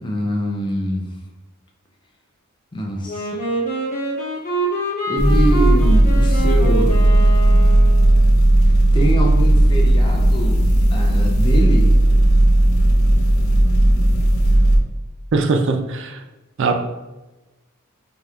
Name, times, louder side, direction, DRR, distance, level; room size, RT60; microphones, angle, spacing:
voice 1, 0.0-1.1 2.7-3.3 5.1-7.0 8.6-10.7 10.9-11.9, equal, 20° left, 0 dB, 0.5 m, -24 dB
Wind instrument woodwind instrument, 3.1-8.3, right 2 dB, 40° left, 1.1 m, -25 dB
sound 1, 5.2-14.8, right 1 dB, 80° left, 0.6 m, -14 dB
voice 2, 15.3-16.2 16.6-16.9, right 3 dB, 60° right, 6 dB, 0.4 m, -20 dB
5.2 x 2.9 x 2.4 m, 1.1 s
head